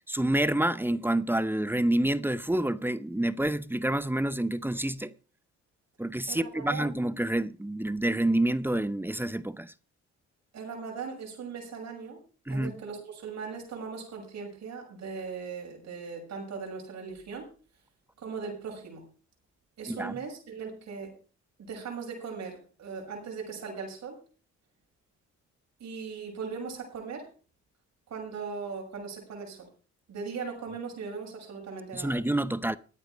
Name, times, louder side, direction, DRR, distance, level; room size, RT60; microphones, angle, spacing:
voice 1, 0.1-5.1 6.0-9.7 12.5-12.7 19.9-20.2 31.9-32.8, right 1 dB, 5° right, 0.6 m, -28 dB
voice 2, 6.3-6.9 10.5-12.2 12.5-17.5 18.2-19.0 19.8-21.1 21.7-24.2 25.8-27.3 28.1-29.7 30.1-32.1, right 5 dB, 60° right, 6.5 m, -39 dB
14.0 x 9.2 x 5.2 m
cardioid pair, 90°, 30 cm